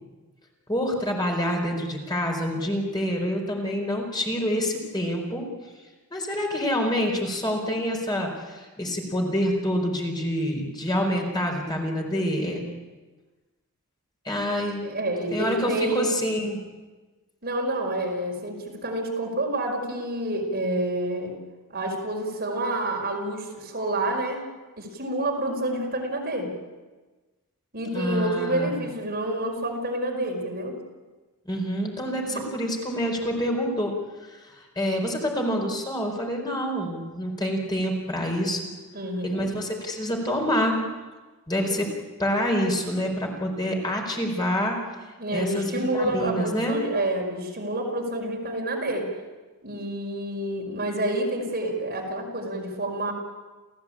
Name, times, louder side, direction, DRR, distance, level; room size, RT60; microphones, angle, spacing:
voice 1, 0.7-5.4 6.1-12.6 14.2-14.8 15.3-16.6 27.9-28.7 31.4-34.0 34.3-38.6 39.2-40.8 41.5-41.9 42.2-44.8 45.3-46.8, equal, 20° left, 1 dB, 4.7 m, -27 dB
voice 2, 14.8-16.1 17.4-21.4 21.7-24.4 24.8-26.5 27.7-30.8 32.2-32.4 38.9-39.4 45.2-49.1 49.6-53.1, right 1 dB, 45° right, 1 dB, 5.1 m, -28 dB
30.0 x 16.0 x 8.8 m, 1.3 s
head